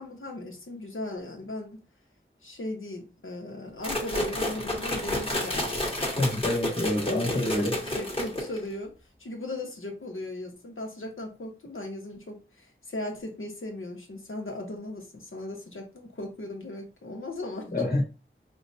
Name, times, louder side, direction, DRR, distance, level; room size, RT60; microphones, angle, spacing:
voice 1, 0.0-1.8 2.4-5.6 7.0-8.9 9.2-17.9, left 1 dB, 75° left, 1.0 m, -37 dB
sound 1, 3.8-8.7, left 1 dB, 25° left, 1.2 m, -30 dB
voice 2, 6.2-7.8 17.7-18.0, left 1 dB, 50° left, 1.4 m, -27 dB
4.5 x 2.2 x 2.7 m
wide cardioid pair, 50°, 21 cm